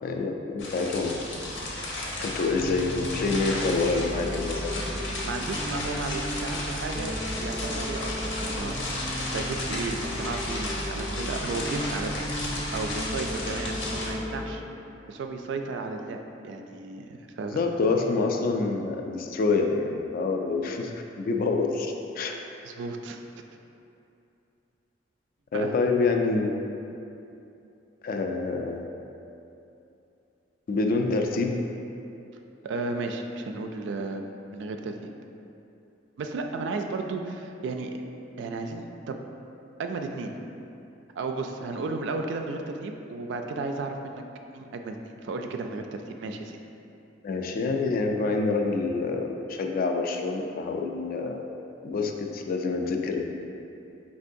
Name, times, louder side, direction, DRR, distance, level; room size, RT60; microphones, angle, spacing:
voice 1, 0.0-1.2 2.2-4.7 17.5-22.3 25.5-26.6 28.0-28.9 30.7-31.6 47.2-51.5 51.8-53.2, left 3 dB, 50° left, 3 dB, 0.3 m, -27 dB
sound 1, 0.6-14.1, left 1 dB, 70° left, 0.7 m, -33 dB
sound 2, 2.5-14.5, equal, 10° left, 0.6 m, -36 dB
voice 2, 5.2-8.8 9.2-12.2 12.7-14.6 15.1-17.6 22.7-23.2 25.5-25.7 32.6-34.2 34.5-35.1 36.2-38.0 38.4-39.2 39.8-40.3 41.2-44.2 44.5-46.6, right 3 dB, 65° right, 5 dB, 0.3 m, -34 dB
4.5 x 3.6 x 2.5 m, 2.8 s
head